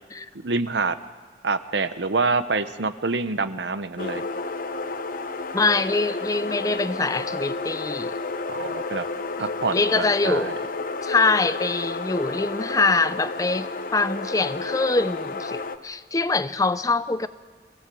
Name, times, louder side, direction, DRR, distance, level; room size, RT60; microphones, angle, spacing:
voice 1, 0.4-0.9 1.4-4.2 8.5-9.0 9.4-10.5, right 3 dB, 75° right, 0.9 m, -26 dB
sound 1, 4.0-15.8, left 3 dB, 50° left, 0.9 m, -31 dB
voice 2, 5.5-8.1 9.4-10.5 11.0-13.7 13.9-17.3, left 3 dB, 20° left, 0.5 m, -24 dB
23.0 x 16.0 x 7.8 m
head